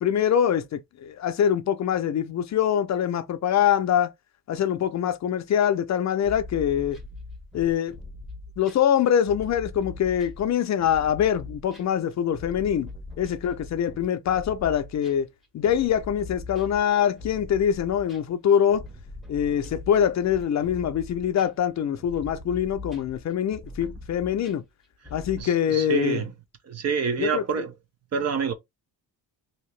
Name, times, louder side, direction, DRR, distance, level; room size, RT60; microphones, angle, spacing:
voice 1, 0.0-4.1 4.5-7.0 7.5-8.0 8.6-12.9 13.2-15.3 15.5-18.8 19.3-24.6 25.1-26.3 27.2-27.4, left 9 dB, 50° left, 0.4 m, -24 dB
sound 1, 6.2-25.4, left 2 dB, ahead, 0.7 m, -41 dB
voice 2, 25.4-26.3 26.6-27.7 28.1-28.5, right 6 dB, 45° right, 0.5 m, -27 dB
2.8 x 2.8 x 3.1 m
cardioid pair, 160°, 37 cm